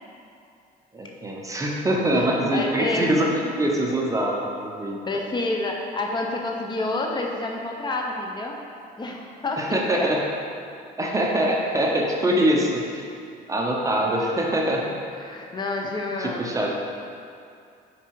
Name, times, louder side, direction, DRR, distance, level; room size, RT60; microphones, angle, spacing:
voice 1, 0.9-5.0 9.6-10.2 11.0-13.0 13.5-14.9 16.2-16.7, right 1 dB, 20° right, -1 dB, 0.8 m, -23 dB
voice 2, 2.2-3.3 4.8-8.6 9.0-10.1 15.2-16.4, left 2 dB, 25° left, 1 dB, 0.8 m, -29 dB
5.9 x 4.8 x 4.7 m, 2.4 s
cardioid pair, 110°, 17 cm